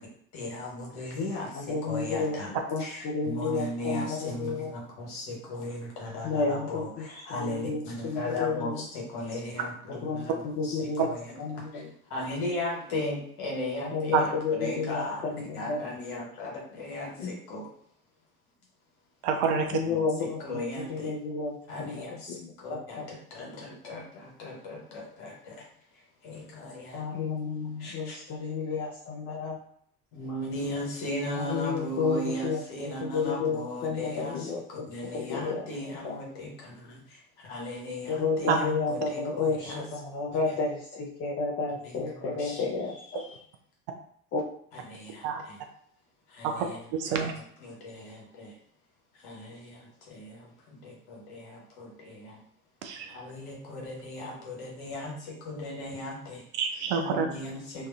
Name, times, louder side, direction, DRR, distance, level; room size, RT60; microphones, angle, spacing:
voice 1, 0.3-2.5 2.8-10.4 10.6-11.3 11.5-11.8 12.1-15.3 15.5-17.6 19.7-21.1 21.7-25.6 26.2-27.0 27.8-28.2 30.1-39.8 40.3-40.4 41.8-42.6 43.2-43.4 44.7-45.6 46.3-46.8 47.1-47.2 47.6-48.5 49.1-52.4 53.1-56.4 57.0-57.9, left 1 dB, 55° left, -2 dB, 1.1 m, -37 dB
voice 2, 1.5-4.7 6.2-8.9 9.9-11.9 13.9-15.9 17.2-17.3 19.5-23.1 26.9-29.6 31.3-32.6 33.0-35.7 36.0-36.2 38.1-43.2 44.3-44.4, left 4 dB, 35° left, -3 dB, 0.5 m, -32 dB
voice 3, 19.2-19.7 38.5-38.6 45.2-45.4 46.4-46.7 46.9-47.3 52.8-53.2 56.5-57.3, right 6 dB, 50° right, 4 dB, 0.4 m, -27 dB
2.5 x 2.3 x 2.2 m, 0.64 s
figure-of-eight pair, 65°, 45 cm